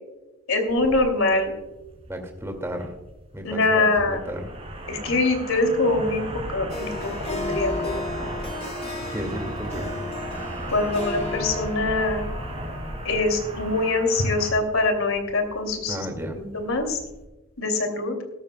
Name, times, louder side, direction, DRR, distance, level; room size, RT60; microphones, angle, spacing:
voice 1, 0.5-1.5 3.4-4.2 4.9-6.2 6.5-8.0 10.7-12.2 13.0-16.1 16.3-17.0 17.6-18.2, left 2 dB, 80° left, 5 dB, 2.7 m, -23 dB
sound 1, 0.7-17.2, right 1 dB, 30° right, 3.8 m, -36 dB
voice 2, 2.1-2.9 3.3-4.5 9.1-10.1 15.9-16.4, equal, 15° right, 4 dB, 2.1 m, -33 dB
Harp, 6.7-14.2, left 3 dB, 30° left, 1.4 m, -35 dB
17.0 x 14.0 x 2.3 m, 1.0 s
head